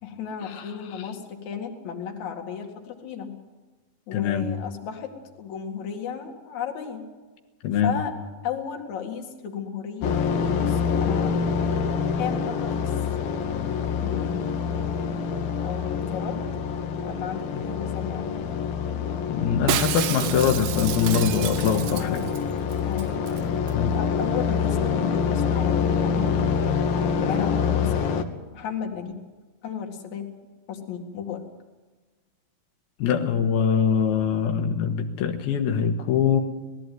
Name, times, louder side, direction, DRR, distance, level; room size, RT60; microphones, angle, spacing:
voice 1, 0.0-3.3 4.1-5.1 5.4-7.1 7.8-8.1 8.4-10.1 10.5-11.4 12.2-12.9 14.0-14.4 15.6-16.4 17.0-18.3 21.9-22.4 22.8-23.3 23.8-26.4 27.2-28.0 28.5-29.1 29.6-30.3 30.7-31.4, left 8 dB, 55° left, 3 dB, 3.2 m, -34 dB
voice 2, 4.1-4.5 7.6-8.0 17.5-17.6 19.3-22.3 23.7-23.9 33.0-36.4, left 7 dB, 90° left, 5 dB, 3.2 m, -23 dB
sound 1, 10.0-28.2, left 6 dB, 70° left, 2.9 m, -26 dB
Shatter, 19.7-22.4 22.7-22.8 23.0-23.4 23.7-23.8, right 12 dB, 75° right, 2.3 m, -30 dB
19.5 x 15.0 x 9.2 m, 1.3 s
omnidirectional pair, 4.3 m